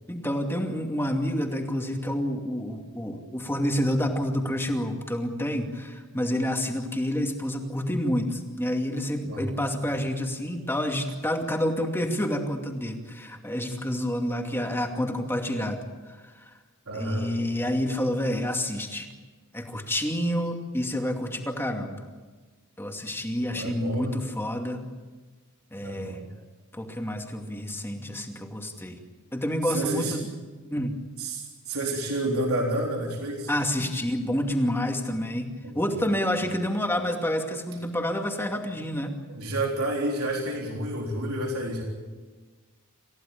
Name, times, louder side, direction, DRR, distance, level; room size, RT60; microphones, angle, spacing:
voice 1, 0.1-15.8 16.1-16.5 16.9-19.1 19.5-22.0 22.8-24.8 25.7-26.2 26.7-29.0 29.3-30.3 30.7-30.9 33.5-39.1, equal, 10° left, 3 dB, 2.5 m, -28 dB
voice 2, 16.9-17.3 23.5-24.1 25.8-26.3 29.7-30.2 31.2-33.5 35.6-35.7 39.3-41.8, right 1 dB, 90° right, -1 dB, 3.7 m, -29 dB
28.5 x 15.5 x 8.7 m, 1.3 s
head